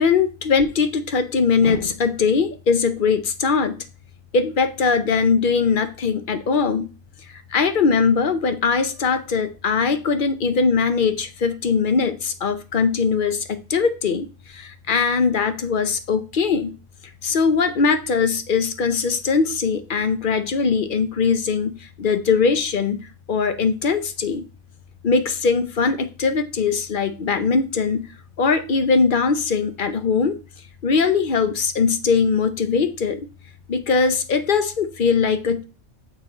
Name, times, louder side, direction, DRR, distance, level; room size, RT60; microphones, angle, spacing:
voice 1, 0.0-3.8 4.3-6.9 7.3-16.8 17.2-24.4 25.0-28.1 28.4-30.4 30.8-33.3 33.7-35.6, left 5 dB, 50° left, 10 dB, 0.7 m, -21 dB
6.4 x 4.6 x 4.2 m, 0.33 s
omnidirectional pair, 1.4 m